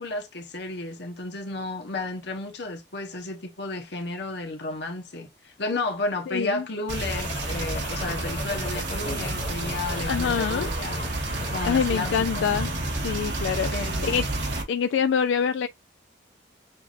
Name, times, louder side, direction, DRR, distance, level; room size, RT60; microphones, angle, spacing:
voice 1, 0.0-11.0 11.5-12.5 13.7-14.3, left 2 dB, 65° left, 1.1 m, -32 dB
voice 2, 6.3-6.7 9.1-9.2 10.1-10.7 11.6-12.7 13.0-13.7 14.0-14.3 14.7-15.7, left 7 dB, 85° left, 0.3 m, -25 dB
sound 1, 6.9-14.6, right 2 dB, 75° right, 1.8 m, -30 dB
sound 2, 7.1-12.9, left 3 dB, 40° left, 1.2 m, -40 dB
6.8 x 2.6 x 2.5 m
head